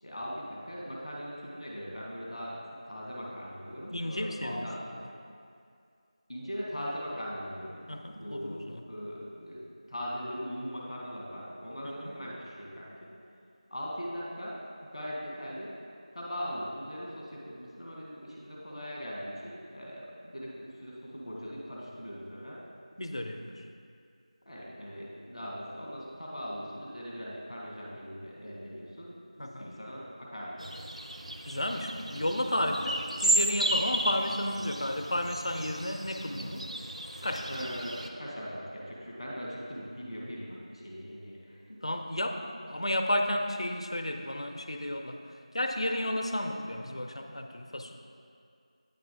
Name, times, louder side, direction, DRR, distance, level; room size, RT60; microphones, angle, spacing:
voice 1, 0.0-2.6 2.8-4.8 6.3-13.1 13.7-14.6 14.9-15.7 16.1-22.6 24.4-30.8 37.5-41.8, equal, ahead, -20 dB, 0.4 m, -40 dB
voice 2, 3.9-4.6 7.9-8.8 11.8-12.2 23.0-23.6 29.4-29.8 31.4-36.7 37.2-37.5 41.8-45.2 45.5-48.0, left 1 dB, 55° left, 5 dB, 0.5 m, -32 dB
sound 1, 30.6-38.1, right 1 dB, 75° right, 0.6 m, -33 dB
8.9 x 3.4 x 5.0 m, 2.4 s
figure-of-eight pair, 175°, 4 cm